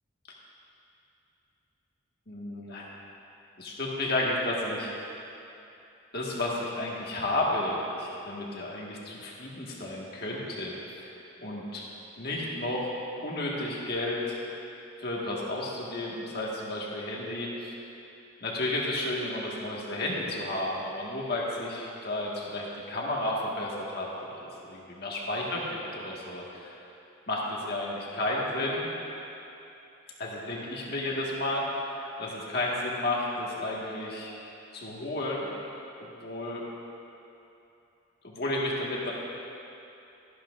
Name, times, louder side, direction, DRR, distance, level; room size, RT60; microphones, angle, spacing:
voice 1, 2.3-2.9 3.6-5.2 6.1-11.1 11.4-11.8 12.2-12.9 13.2-14.4 15.0-17.7 18.4-25.6 25.9-26.8 27.3-28.8 30.2-34.3 34.7-35.5 36.0-36.6 38.2-39.1, left 1 dB, 55° left, -4 dB, 1.6 m, -32 dB
13.0 x 11.5 x 2.5 m, 2.8 s
head